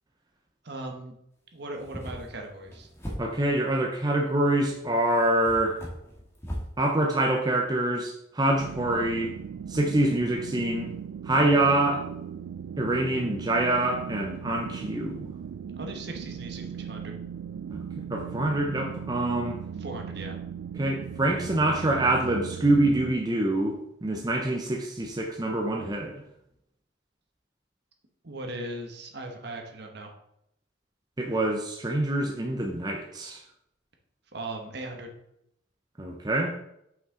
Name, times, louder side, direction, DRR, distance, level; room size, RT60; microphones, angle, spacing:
voice 1, 0.6-1.1 1.5-2.9 15.8-17.2 19.8-20.4 28.2-30.1 34.3-35.1, right 2 dB, 55° right, 3 dB, 1.1 m, -38 dB
sound 1, 1.7-3.7 4.7-4.8 5.4-6.8, equal, 15° left, 1.4 m, -38 dB
voice 2, 3.2-5.8 6.8-9.3 9.7-10.9 11.2-12.1 12.8-15.3 17.7-17.8 18.1-19.6 20.8-26.2 31.2-33.4 36.0-36.5, right 1 dB, 20° right, 1 dB, 0.6 m, -25 dB
sound 2, 8.6-23.1, right 7 dB, 80° right, 0.3 m, -38 dB
5.8 x 5.6 x 3.7 m, 0.77 s
head